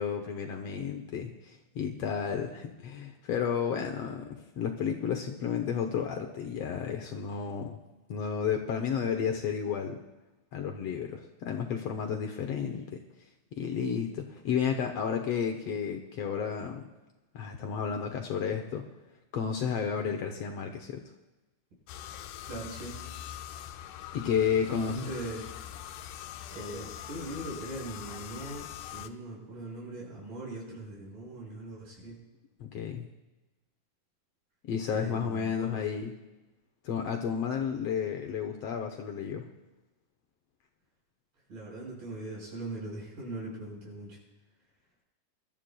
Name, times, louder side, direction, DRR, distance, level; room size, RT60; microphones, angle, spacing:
voice 1, 0.0-7.8 8.1-10.0 10.5-13.0 13.5-16.9 17.3-18.9 19.3-21.0 24.1-25.0 32.6-33.1 34.6-36.1 36.8-39.5, left 7 dB, 70° left, 4 dB, 1.6 m, -32 dB
sound 1, 21.9-29.1, left 11 dB, 85° left, 2.1 m, -43 dB
voice 2, 22.4-23.0 24.7-25.5 26.5-32.2 34.9-35.8 41.5-44.2, right 2 dB, 90° right, -4 dB, 7.4 m, -40 dB
23.5 x 13.0 x 2.3 m, 1.1 s
omnidirectional pair, 3.6 m